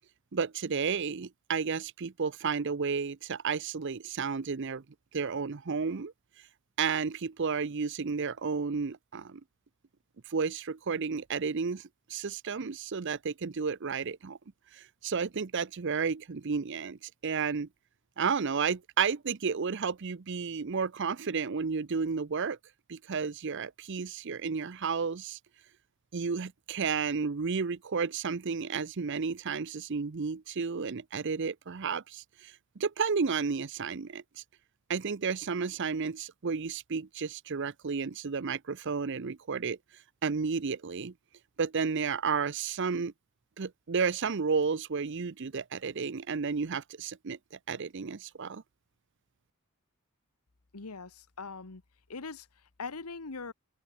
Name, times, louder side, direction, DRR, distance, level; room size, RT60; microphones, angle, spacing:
voice 1, 0.3-4.8 5.1-6.1 6.8-9.4 10.3-11.8 12.1-14.4 14.7-17.7 18.2-22.6 22.9-25.4 26.1-34.2 34.9-39.8 40.2-41.1 41.6-43.1 43.6-48.6, right 5 dB, 55° right, 0.6 m, -32 dB
voice 2, 50.7-51.8 52.1-53.5, left 4 dB, 90° left, 1.3 m, -41 dB
open air
head